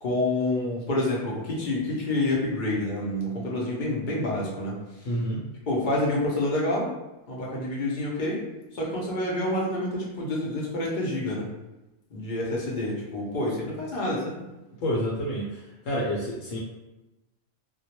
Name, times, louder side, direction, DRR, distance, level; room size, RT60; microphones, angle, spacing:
voice 1, 0.0-4.8 5.7-6.9 7.3-8.4 8.7-11.5 12.1-14.4, left 1 dB, 55° left, -4 dB, 0.5 m, -28 dB
voice 2, 5.0-5.5 14.8-16.6, equal, 75° left, -5 dB, 0.9 m, -29 dB
2.2 x 2.1 x 2.8 m, 1.0 s
omnidirectional pair, 1.4 m